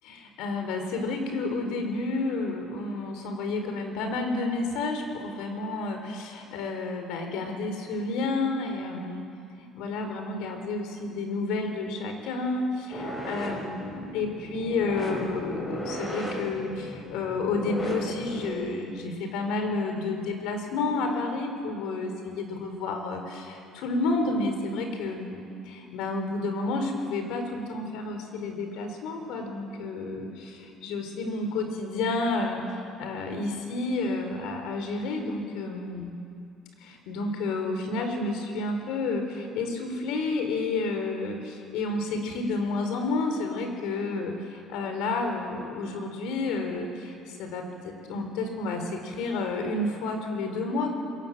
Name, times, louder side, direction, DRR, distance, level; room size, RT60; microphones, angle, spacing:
voice 1, 0.0-9.3 9.5-36.1 36.8-51.0, left 3 dB, 80° left, 5 dB, 4.6 m, -30 dB
sound 1, 12.9-18.5, equal, 20° left, 5.7 m, -36 dB
27.0 x 22.0 x 7.8 m, 2.4 s
cardioid pair, 160°, 0 cm